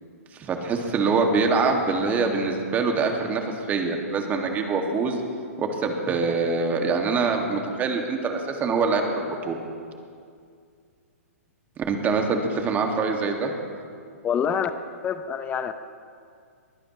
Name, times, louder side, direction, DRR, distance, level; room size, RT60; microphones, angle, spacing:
voice 1, 0.4-5.2 5.6-9.6 11.9-13.5, right 4 dB, 20° right, 3 dB, 2.0 m, -24 dB
voice 2, 14.2-14.7 15.0-15.7, left 8 dB, 15° left, 10 dB, 0.6 m, -26 dB
23.0 x 16.0 x 3.1 m, 2.2 s
hypercardioid pair, 125°, 8 cm